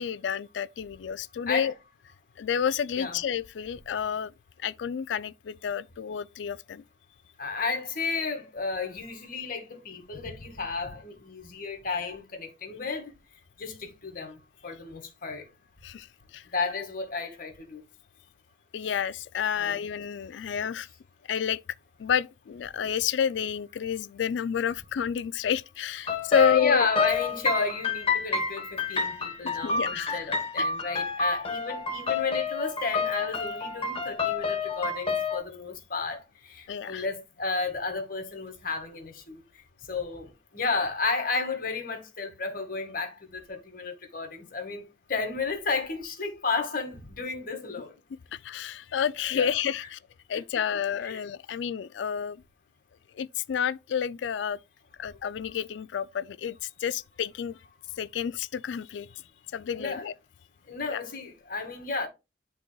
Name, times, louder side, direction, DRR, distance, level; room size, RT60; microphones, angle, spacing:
voice 1, 0.0-1.7 2.4-4.3 4.6-6.8 15.8-16.1 16.3-16.4 18.7-20.9 21.3-21.6 22.0-26.9 29.6-30.3 36.7-37.0 48.3-50.0 50.3-52.4 53.2-54.6 55.0-57.6 58.0-59.1 59.5-60.1 60.9-61.0, left 8 dB, 75° left, 0.4 m, -30 dB
voice 2, 7.4-13.1 13.6-14.4 14.6-15.5 16.5-17.8 19.6-19.9 26.3-39.4 39.9-44.8 45.1-48.0 49.3-49.5 51.0-51.2 59.7-60.1 60.7-62.1, left 4 dB, 50° left, 1.9 m, -32 dB
sound 1, 26.1-35.4, left 4 dB, 30° left, 1.3 m, -29 dB
11.0 x 4.0 x 2.3 m
head